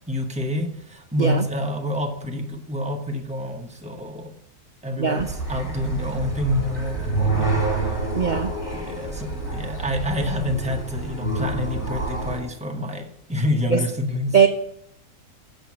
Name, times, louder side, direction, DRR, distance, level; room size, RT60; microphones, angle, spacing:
voice 1, 0.1-4.4 4.8-8.0 8.7-14.4, left 1 dB, 5° right, 3 dB, 0.7 m, -28 dB
voice 2, 5.0-5.3 8.1-8.5 13.7-13.8 14.3-14.5, right 6 dB, 75° right, 6 dB, 0.4 m, -19 dB
sound 1, 5.2-12.4, right 3 dB, 30° left, 2.4 m, -27 dB
7.7 x 6.2 x 7.2 m, 0.75 s
omnidirectional pair, 1.6 m